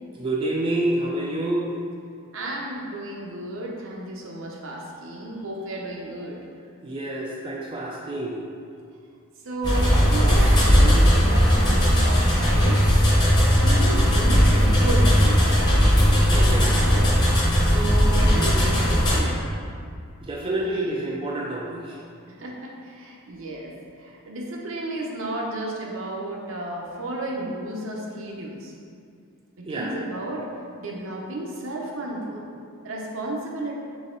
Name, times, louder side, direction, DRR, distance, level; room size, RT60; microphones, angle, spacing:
voice 1, 0.1-1.7 6.8-8.5 16.3-16.7 20.2-22.0 29.6-29.9, right 1 dB, 25° right, -4 dB, 0.3 m, -28 dB
voice 2, 2.3-6.4 9.4-12.8 13.5-15.7 16.7-17.1 17.6-19.4 20.6-20.8 22.3-28.7 29.6-30.5 30.8-32.5 32.8-33.7, right 1 dB, 65° right, -2 dB, 0.7 m, -33 dB
sound 1, 9.6-19.2, equal, 20° left, 0.9 m, -18 dB
4.0 x 3.5 x 3.7 m, 2.3 s
head